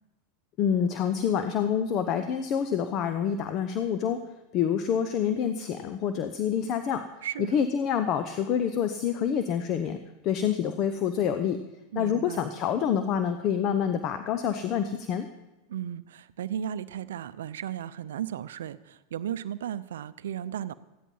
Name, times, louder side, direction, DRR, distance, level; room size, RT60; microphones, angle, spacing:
voice 1, 0.6-4.2 4.5-7.0 7.5-10.0 10.2-11.6 12.0-15.3, left 8 dB, 45° left, 9 dB, 0.9 m, -27 dB
voice 2, 7.2-7.6 11.9-12.4 15.7-20.7, right 10 dB, 80° right, 14 dB, 0.6 m, -35 dB
14.5 x 11.0 x 5.5 m, 1.0 s
hypercardioid pair, 100°, 0 cm